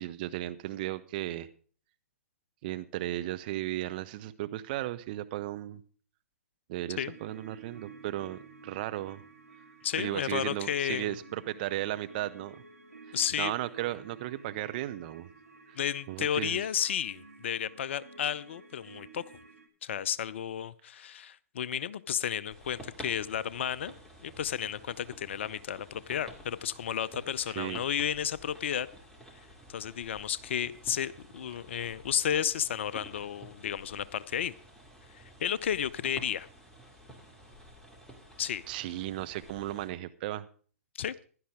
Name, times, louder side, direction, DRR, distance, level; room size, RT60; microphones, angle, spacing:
voice 1, 0.0-1.5 2.6-5.8 6.7-9.2 10.0-12.6 13.1-15.3 15.7-15.8 16.1-16.6 27.6-27.8 38.7-40.5, right 15 dB, 35° right, 0.8 m, -35 dB
sound 1, 6.9-19.7, right 4 dB, 80° right, 2.5 m, -53 dB
voice 2, 9.8-11.1 13.1-13.5 15.8-19.2 19.8-23.9 24.2-28.9 29.7-34.5 35.4-36.5 38.4-38.6 41.0-41.1, left 9 dB, 50° left, 0.6 m, -32 dB
sound 2, 22.5-39.9, equal, 5° left, 2.5 m, -51 dB
16.0 x 11.5 x 3.7 m
figure-of-eight pair, 120°, 8 cm